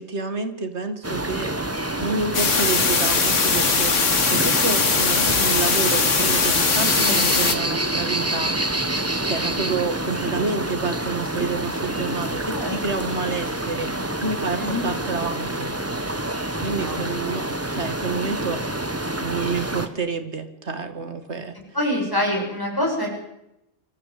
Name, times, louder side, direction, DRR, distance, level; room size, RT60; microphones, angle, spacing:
voice 1, 0.0-8.6 9.3-15.7 16.6-17.4 17.7-18.6 19.2-21.6, right 4 dB, 60° right, 9 dB, 2.3 m, -29 dB
sound 1, 1.0-19.9, right 1 dB, 10° right, 1.3 m, -27 dB
sound 2, 2.3-7.6, left 4 dB, 70° left, 2.2 m, -20 dB
voice 2, 12.5-13.1 14.5-14.8 16.7-17.3 21.7-23.1, left 1 dB, 15° left, -1 dB, 7.8 m, -26 dB
25.5 x 14.0 x 8.6 m, 0.87 s
omnidirectional pair, 1.3 m